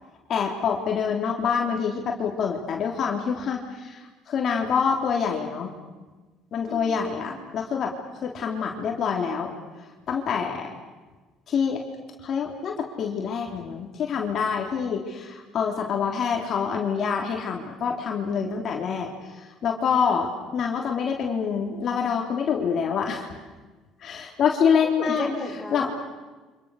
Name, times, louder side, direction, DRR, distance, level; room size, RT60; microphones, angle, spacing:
voice 1, 0.3-5.7 6.5-9.5 10.1-10.7 11.5-11.8 12.2-23.4 24.0-25.3 25.7-25.9, left 6 dB, 50° left, 1 dB, 3.7 m, -26 dB
voice 2, 6.7-7.4 25.0-26.0, left 2 dB, 5° left, 2 dB, 6.8 m, -34 dB
29.5 x 26.5 x 6.7 m, 1.3 s
supercardioid pair, 100°, 0 cm